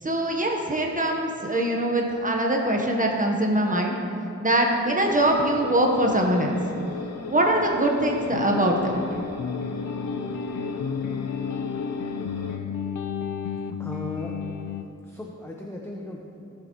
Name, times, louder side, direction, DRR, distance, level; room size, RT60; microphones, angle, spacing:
voice 1, 0.0-4.0 4.4-6.6 7.3-9.2, right 1 dB, 25° right, 0 dB, 1.2 m, -23 dB
sound 1, 5.0-12.6, left 4 dB, 60° left, 1.0 m, -36 dB
sound 2, 8.3-14.8, left 6 dB, 80° left, 0.6 m, -32 dB
voice 2, 13.8-14.4 15.1-16.5, left 1 dB, 10° left, -1 dB, 0.9 m, -36 dB
17.5 x 6.9 x 3.1 m, 2.7 s
cardioid pair, 85°, 30 cm